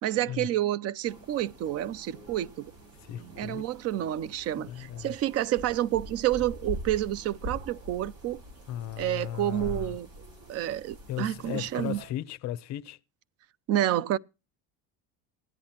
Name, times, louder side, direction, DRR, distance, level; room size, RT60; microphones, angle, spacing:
voice 1, 0.0-2.7 3.4-8.4 9.0-10.1 10.5-12.0 13.7-14.2, right 13 dB, 45° right, 0.5 m, -29 dB
sound 1, 1.0-12.1, equal, 65° right, 4.8 m, -44 dB
voice 2, 2.9-3.7 4.5-5.1 8.7-10.0 11.1-13.0, left 12 dB, 50° left, 0.7 m, -36 dB
16.0 x 10.5 x 2.9 m
cardioid pair, 145°, 35 cm